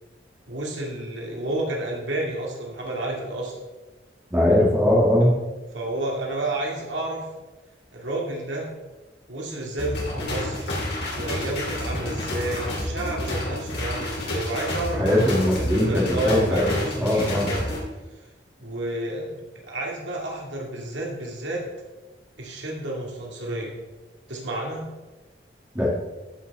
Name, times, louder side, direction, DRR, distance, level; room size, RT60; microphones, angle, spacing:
voice 1, 0.5-3.5 5.2-5.3 5.7-7.2 7.9-8.7 9.3-10.8 11.1-15.3 15.6-17.6 18.6-19.4 19.7-21.7 22.4-23.7 24.3-24.8, right 1 dB, 75° right, -2 dB, 2.3 m, -30 dB
voice 2, 4.3-5.3 14.9-17.5 25.7-25.9, left 1 dB, 10° right, -6 dB, 2.5 m, -21 dB
sound 1, 9.8-17.8, left 1 dB, 60° left, 3.4 m, -29 dB
14.0 x 6.3 x 3.6 m, 1.1 s
head